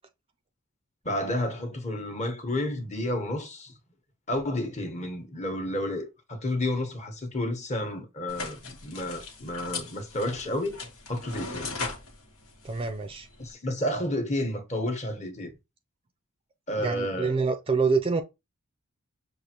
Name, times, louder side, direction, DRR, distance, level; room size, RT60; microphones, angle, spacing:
voice 1, 1.0-3.7 4.3-10.8 11.1-11.8 13.4-15.5 16.7-17.3, left 1 dB, 30° left, 1.0 m, -31 dB
sound 1, 8.3-13.5, left 3 dB, 90° left, 1.4 m, -39 dB
voice 2, 12.6-13.3 16.8-18.2, right 4 dB, 25° right, 0.4 m, -26 dB
6.4 x 2.5 x 2.9 m
head